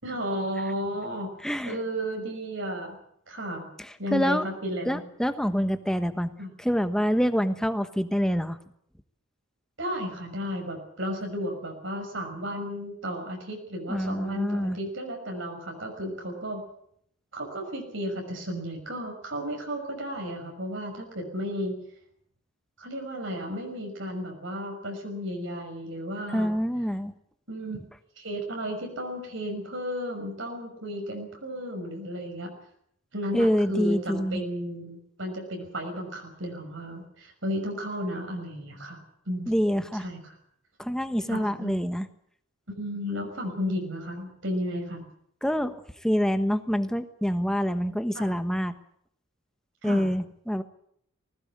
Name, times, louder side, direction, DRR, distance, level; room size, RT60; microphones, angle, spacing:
voice 1, 0.0-1.3 1.6-3.0 3.3-3.7 4.0-5.0 6.4-6.5 9.8-16.6 17.3-21.8 22.8-26.5 27.5-27.8 28.2-32.5 33.1-39.0 39.3-39.5 39.9-40.3 41.3-41.7 42.7-45.0 48.1-48.3 49.8-50.1, equal, 65° right, 2 dB, 6.0 m, -33 dB
voice 2, 1.4-1.8 3.8-4.5 4.9-6.3 6.6-8.6 13.9-14.8 26.3-27.1 33.3-34.4 39.5-40.0 40.8-42.1 45.4-48.8 49.8-50.6, equal, 5° left, 9 dB, 1.2 m, -26 dB
20.0 x 18.5 x 8.9 m, 0.69 s
head